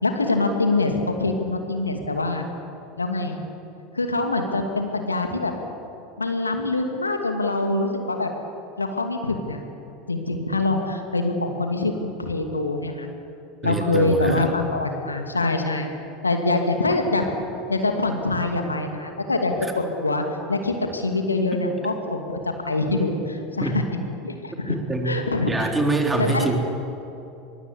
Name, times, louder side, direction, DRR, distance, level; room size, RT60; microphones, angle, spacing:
voice 1, 0.0-2.4 3.0-3.4 3.9-5.5 6.2-8.3 8.8-9.6 10.1-13.1 13.6-15.9 16.2-17.2 17.7-23.8 24.2-24.8 25.0-25.7 26.2-26.5, left 2 dB, 85° left, 4 dB, 2.5 m, -24 dB
voice 2, 13.6-14.4 21.5-21.7 23.6-23.8 24.7-25.2 25.5-26.6, right 2 dB, 10° right, 2 dB, 4.1 m, -24 dB
24.0 x 22.5 x 8.4 m, 2.8 s
figure-of-eight pair, 80°, 0 cm